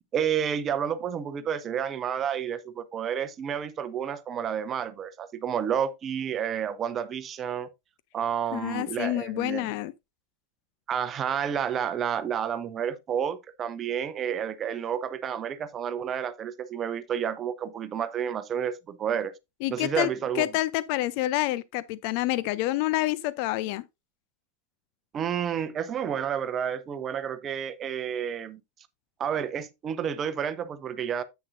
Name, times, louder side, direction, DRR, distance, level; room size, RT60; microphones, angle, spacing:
voice 1, 0.1-7.7 8.1-9.7 10.9-19.3 19.7-20.5 25.1-28.6 29.2-31.2, right 8 dB, 25° right, 0.8 m, -30 dB
voice 2, 8.5-9.9 19.6-20.1 20.3-23.8, left 16 dB, 45° left, 0.4 m, -28 dB
9.8 x 8.2 x 2.6 m
figure-of-eight pair, 90°, 0 cm